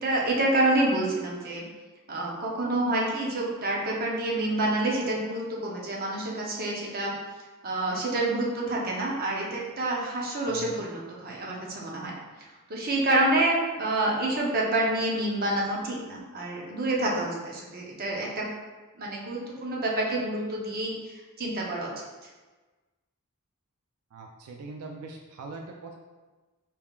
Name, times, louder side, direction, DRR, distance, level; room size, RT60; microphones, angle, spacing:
voice 1, 0.0-1.6 2.1-7.1 7.6-12.1 12.7-18.5 19.0-20.9 21.4-21.9, right 1 dB, 45° right, -3 dB, 0.8 m, -28 dB
voice 2, 10.5-10.8 24.1-26.0, right 3 dB, 80° right, 2 dB, 0.4 m, -42 dB
4.4 x 3.6 x 2.3 m, 1.3 s
head